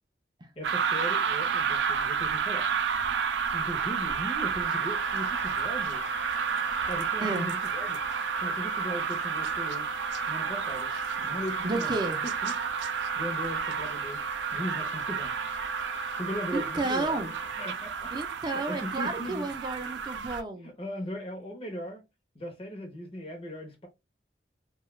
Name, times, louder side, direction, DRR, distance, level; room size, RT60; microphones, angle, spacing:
voice 1, 0.6-2.7 3.5-6.0 6.9-8.0 8.4-9.9 10.2-10.9 11.2-12.5 13.2-14.2 14.5-15.4 16.1-17.2 17.6-18.1 18.4-19.5 20.6-22.0 22.3-23.9, equal, 30° left, 0.8 m, -38 dB
sound 1, 0.6-20.4, right 6 dB, 85° right, 0.4 m, -31 dB
Wind instrument woodwind instrument, 4.5-17.7, left 10 dB, 80° left, 0.5 m, -44 dB
voice 2, 7.2-7.5 10.9-11.1 11.6-12.2 16.5-17.3 18.1-20.7, right 2 dB, 25° right, 0.4 m, -32 dB
2.7 x 2.3 x 3.0 m
head